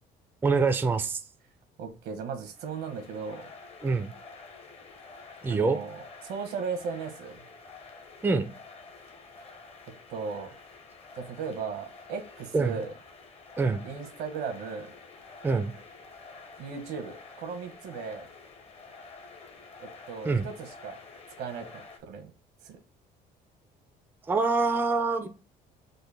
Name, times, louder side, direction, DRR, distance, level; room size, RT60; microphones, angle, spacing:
voice 1, 0.4-1.2 3.8-4.1 5.4-5.8 8.2-8.5 12.5-12.8 13.6-13.8 15.4-15.7 20.2-20.5 24.3-25.3, right 4 dB, 10° right, 0.3 m, -25 dB
voice 2, 1.8-3.5 5.5-7.4 10.1-10.5 11.1-13.0 13.8-14.9 16.6-18.3 19.8-21.0 21.4-22.3 22.6-22.8, right 5 dB, 80° right, 0.8 m, -37 dB
sound 1, 2.5-22.0, left 4 dB, 35° left, 0.6 m, -49 dB
3.8 x 2.1 x 3.2 m
cardioid pair, 110°, 17 cm